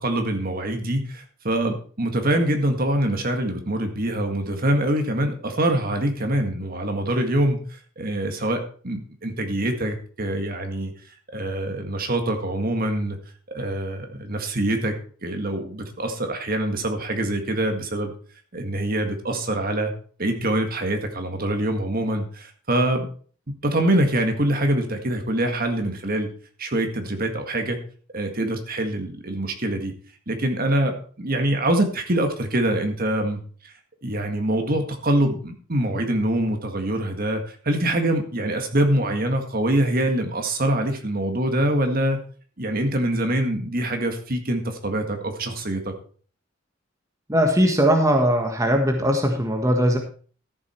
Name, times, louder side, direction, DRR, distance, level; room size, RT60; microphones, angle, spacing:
voice 1, 0.0-7.6 8.0-10.9 11.3-13.2 13.5-14.9 15.2-18.1 18.5-19.9 20.2-23.1 23.6-26.3 26.6-27.8 28.1-29.9 30.3-33.7 34.0-42.2 42.6-45.9, right 1 dB, 50° right, 5 dB, 1.8 m, -24 dB
voice 2, 47.3-50.0, equal, 15° right, 3 dB, 1.4 m, -20 dB
13.5 x 7.5 x 4.5 m, 0.42 s
head